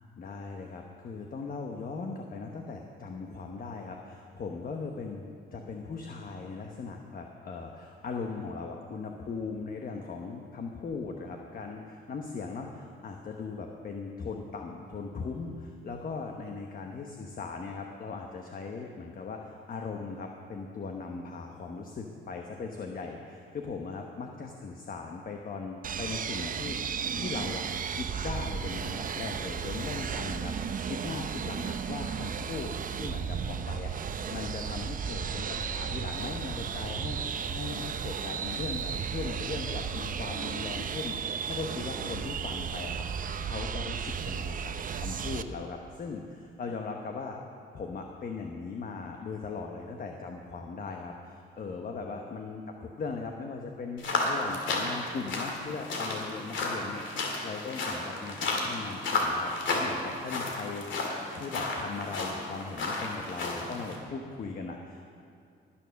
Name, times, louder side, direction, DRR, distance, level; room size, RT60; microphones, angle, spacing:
voice 1, 0.2-47.4 47.7-60.8 61.3-65.1, left 4 dB, 45° left, 2 dB, 1.1 m, -39 dB
sound 1, 25.8-45.4, right 7 dB, 45° right, 0.6 m, -34 dB
sound 2, 54.0-64.0, left 2 dB, 70° left, 2.5 m, -32 dB
19.5 x 7.2 x 6.4 m, 2.4 s
cardioid pair, 90°, 20 cm